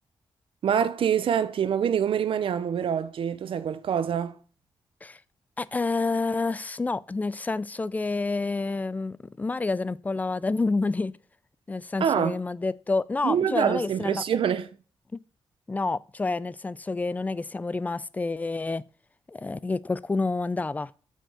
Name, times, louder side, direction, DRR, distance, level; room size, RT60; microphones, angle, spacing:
voice 1, 0.6-4.4 12.0-12.4 13.2-14.7, right 8 dB, 70° right, 0.6 m, -25 dB
voice 2, 5.6-11.1 11.7-14.2 15.1-15.2 15.7-18.8 19.3-20.9, left 3 dB, 15° left, 0.3 m, -28 dB
6.8 x 6.3 x 5.1 m
wide cardioid pair, 130°, 9 cm